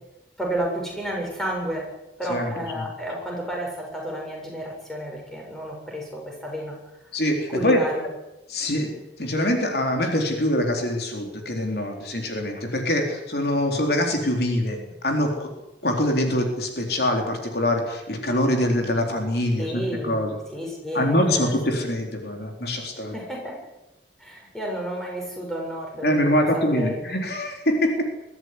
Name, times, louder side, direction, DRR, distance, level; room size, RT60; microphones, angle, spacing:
voice 1, 0.4-1.9 2.2-6.8 7.5-8.0 19.6-21.6 23.0-23.6 24.2-27.0, equal, ahead, -2 dB, 7.5 m, -31 dB
voice 2, 2.3-2.9 7.1-7.8 8.5-8.9 9.2-15.5 15.8-20.4 20.9-23.2 26.0-27.9, left 1 dB, 60° left, 2 dB, 4.0 m, -24 dB
23.0 x 15.0 x 9.9 m, 0.96 s
head